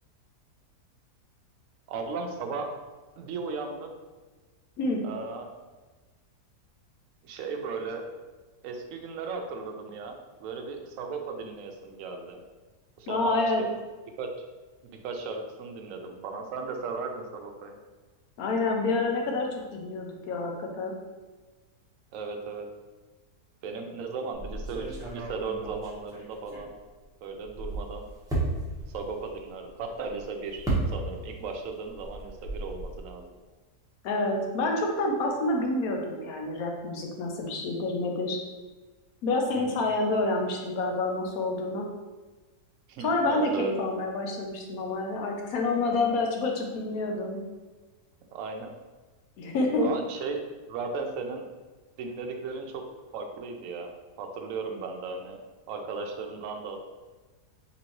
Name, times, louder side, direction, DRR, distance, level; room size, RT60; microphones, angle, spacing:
voice 1, 1.9-2.8 3.2-3.9 5.0-5.5 7.2-8.1 8.6-12.4 13.0-13.7 14.2-14.3 14.8-17.8 22.1-22.7 23.6-26.7 27.2-28.1 28.9-30.6 30.9-33.3 39.5-39.9 42.9-43.7 45.8-46.1 48.3-48.7 49.8-50.4 50.7-51.5 52.0-52.9 53.1-53.9 54.2-55.4 55.7-56.8, right 4 dB, 65° right, 3 dB, 0.9 m, -36 dB
voice 2, 13.1-13.6 18.4-20.9 34.0-38.4 39.2-41.9 43.0-47.4 49.4-49.9, left 2 dB, 70° left, 1 dB, 1.1 m, -28 dB
sound 1, 24.3-27.0 27.4-31.4 31.7-33.0, right 2 dB, 5° right, 0.6 m, -34 dB
3.9 x 3.7 x 3.0 m, 1.3 s
omnidirectional pair, 1.7 m